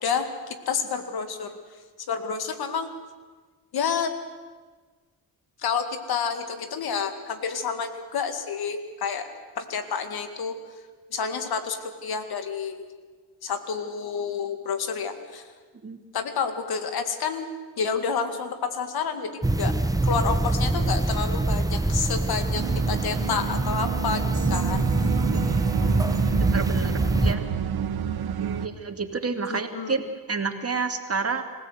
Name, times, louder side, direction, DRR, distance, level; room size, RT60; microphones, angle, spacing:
voice 1, 0.0-1.6 2.1-2.9 3.7-4.1 5.6-9.3 9.6-10.6 11.1-12.8 13.4-15.4 16.1-17.5 17.8-19.7 20.0-25.1 29.5-30.0, left 6 dB, 80° left, 8 dB, 2.2 m, -29 dB
sound 1, 19.4-27.3, right 2 dB, 10° right, 1.2 m, -24 dB
sound 2, 22.5-28.7, right 8 dB, 80° right, 1.4 m, -29 dB
voice 2, 25.3-25.6 26.2-27.4 28.6-31.4, right 4 dB, 40° right, 6 dB, 2.5 m, -30 dB
26.5 x 16.5 x 8.1 m, 1.4 s
cardioid pair, 65°, 37 cm